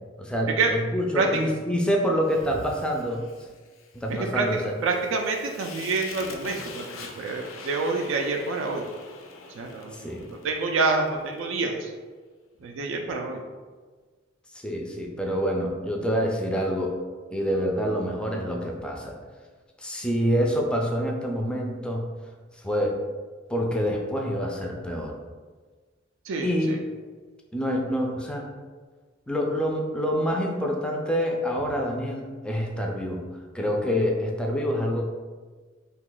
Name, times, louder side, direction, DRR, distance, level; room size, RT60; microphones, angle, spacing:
voice 1, 0.2-3.5 3.9-4.7 9.9-10.2 14.5-16.9 17.3-19.2 19.8-22.0 22.6-23.0 23.5-25.2 26.4-26.7 27.5-28.5 29.3-33.3 33.5-35.0, equal, 5° left, 0 dB, 0.3 m, -27 dB
Fire, 2.2-11.5, left 4 dB, 85° left, 0.5 m, -44 dB
voice 2, 4.1-8.8 9.5-11.9 12.6-13.4 26.2-26.8, right 3 dB, 70° right, 2 dB, 0.3 m, -27 dB
2.8 x 2.3 x 3.7 m, 1.4 s
head